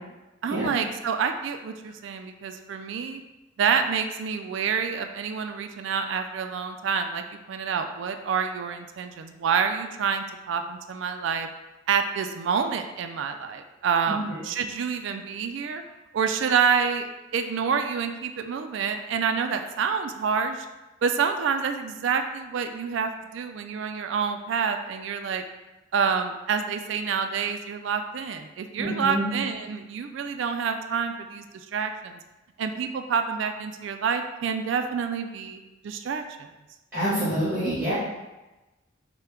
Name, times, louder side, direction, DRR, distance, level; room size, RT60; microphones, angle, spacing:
voice 1, 0.4-3.2 3.6-11.5 11.9-15.8 16.1-20.7 21.0-25.4 25.9-31.5 31.7-32.2 32.6-36.5, right 6 dB, 65° right, 6 dB, 0.3 m, -28 dB
voice 2, 28.8-29.3 36.9-37.9, right 1 dB, 10° right, -10 dB, 1.5 m, -27 dB
5.6 x 2.2 x 3.6 m, 1.1 s
head